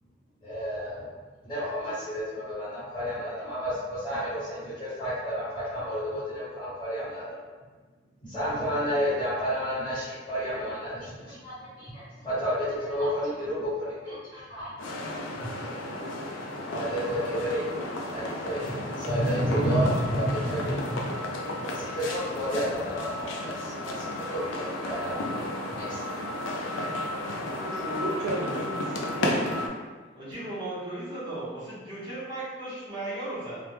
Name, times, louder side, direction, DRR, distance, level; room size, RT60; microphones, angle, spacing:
voice 1, 0.4-1.0 1.4-7.4 8.2-14.7 16.7-17.6 18.1-21.0 21.7-25.1 25.9-26.0, equal, 25° left, -12 dB, 1.0 m, -30 dB
sound 1, 14.8-29.7, left 1 dB, 85° left, 0.3 m, -33 dB
voice 2, 27.4-29.6, right 2 dB, 85° right, -3 dB, 0.6 m, -33 dB
voice 3, 30.2-33.6, right 2 dB, 25° right, -10 dB, 0.7 m, -36 dB
2.1 x 2.0 x 3.0 m, 1.4 s
head